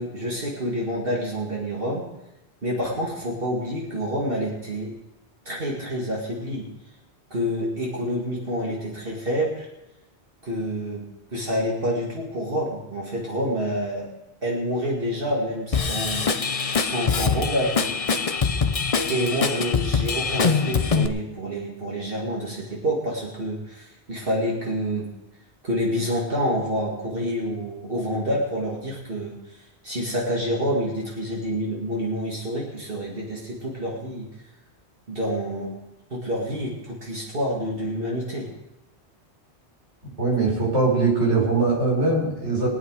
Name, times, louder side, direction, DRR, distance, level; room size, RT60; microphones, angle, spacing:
voice 1, 0.0-2.0 2.6-4.9 5.5-6.7 7.3-9.7 10.4-11.0 11.3-14.1 14.4-16.3 16.8-17.7 19.1-25.1 25.6-34.3 35.1-35.8 36.1-38.5, equal, 55° right, -3 dB, 2.4 m, -28 dB
Drum kit / Drum, 15.7-21.1, left 5 dB, 35° left, 0.7 m, -23 dB
voice 2, 40.2-42.7, right 3 dB, 85° right, -5 dB, 5.9 m, -21 dB
21.5 x 9.1 x 4.8 m, 0.91 s
omnidirectional pair, 1.1 m